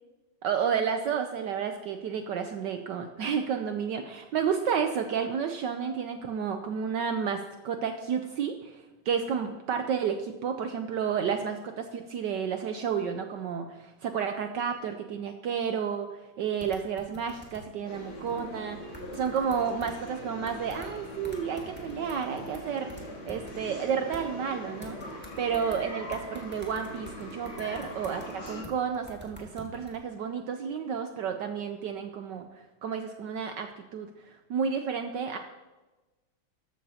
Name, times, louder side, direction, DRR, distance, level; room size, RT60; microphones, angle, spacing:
voice 1, 0.4-18.8 19.1-22.9 23.3-35.4, right 7 dB, 70° right, 6 dB, 1.2 m, -31 dB
sound 1, 16.6-17.6 18.3-18.4 18.9-20.1 20.5-24.2 24.8-25.8 26.1-30.0, right 2 dB, 5° right, 1.6 m, -48 dB
sound 2, 17.8-28.6, left 1 dB, 85° left, 3.4 m, -42 dB
13.5 x 12.0 x 2.8 m, 1.1 s
omnidirectional pair, 2.3 m